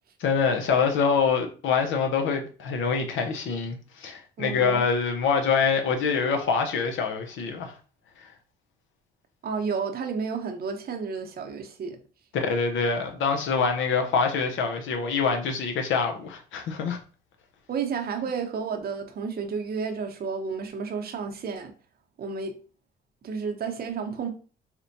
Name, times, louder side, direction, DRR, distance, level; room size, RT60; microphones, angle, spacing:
voice 1, 0.2-7.7 12.3-17.0, left 5 dB, 75° left, 0.6 m, -25 dB
voice 2, 4.4-4.8 9.4-12.0 17.7-21.7 22.2-22.5 23.2-24.3, right 5 dB, 50° right, 0.7 m, -31 dB
4.3 x 2.1 x 2.6 m
cardioid pair, 90°, 20 cm